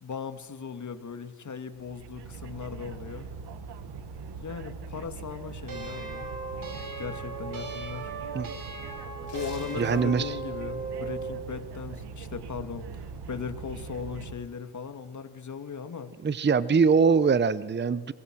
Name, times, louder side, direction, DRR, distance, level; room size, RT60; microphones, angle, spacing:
voice 1, 0.0-3.3 4.4-6.3 7.0-8.1 9.3-16.1, left 6 dB, 45° left, 8 dB, 2.4 m, -38 dB
sound 1, 1.8-14.4, right 5 dB, 70° right, 1.5 m, -41 dB
sound 2, 5.7-11.4, right 4 dB, 50° right, 6.1 m, -38 dB
sound 3, 9.1-10.3 10.7-10.9, left 10 dB, 85° left, 4.8 m, -50 dB
voice 2, 9.8-10.3 16.2-18.1, right 5 dB, 25° right, 17 dB, 0.8 m, -23 dB
27.0 x 22.5 x 6.3 m, 1.5 s
supercardioid pair, 65°, 42 cm